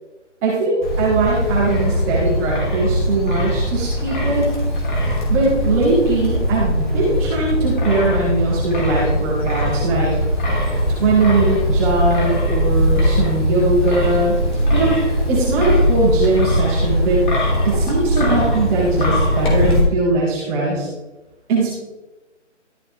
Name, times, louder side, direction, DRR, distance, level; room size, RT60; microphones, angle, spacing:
voice 1, 0.4-4.4 5.3-10.1 10.9-14.3 14.7-17.2 17.6-20.9 21.5-21.7, right 2 dB, 10° right, -7 dB, 2.0 m, -20 dB
Wind, 0.8-19.8, equal, 40° left, 3.1 m, -20 dB
13.0 x 6.4 x 3.4 m, 1.0 s
figure-of-eight pair, 155°, 37 cm